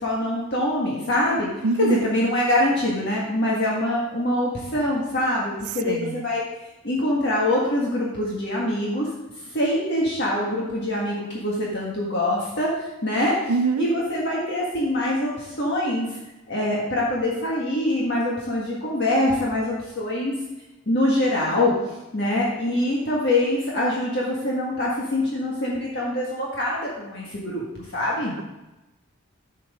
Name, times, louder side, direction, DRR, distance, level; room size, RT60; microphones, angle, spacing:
voice 1, 0.0-1.5 1.8-6.4 6.8-9.1 9.5-13.4 13.8-16.2 16.5-20.3 20.9-28.3, left 1 dB, 50° left, -4 dB, 1.7 m, -24 dB
voice 2, 1.6-2.0 5.8-6.2 13.5-13.9, right 4 dB, 85° right, 13 dB, 0.5 m, -24 dB
11.5 x 7.6 x 3.7 m, 1.0 s
head